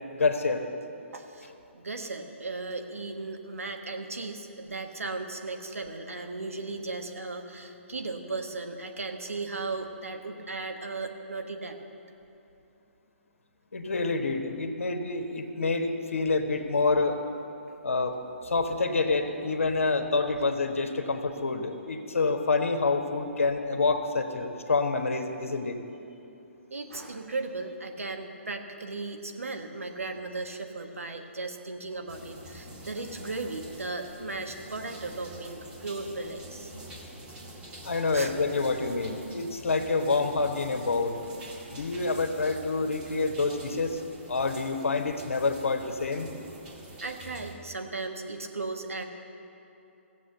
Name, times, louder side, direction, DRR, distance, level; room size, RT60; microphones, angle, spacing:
voice 1, 0.1-0.6 13.7-17.2 17.8-18.2 18.4-25.8 37.8-41.2 41.7-44.0 44.3-46.3, left 3 dB, 75° left, 6 dB, 1.3 m, -27 dB
voice 2, 1.1-1.5 1.7-11.8 26.7-36.7 38.1-38.3 47.0-49.0, right 3 dB, 85° right, 5 dB, 1.4 m, -36 dB
sound 1, 32.1-47.5, right 1 dB, 15° right, 1.7 m, -46 dB
15.5 x 7.7 x 7.8 m, 2.8 s
hypercardioid pair, 135°, 7 cm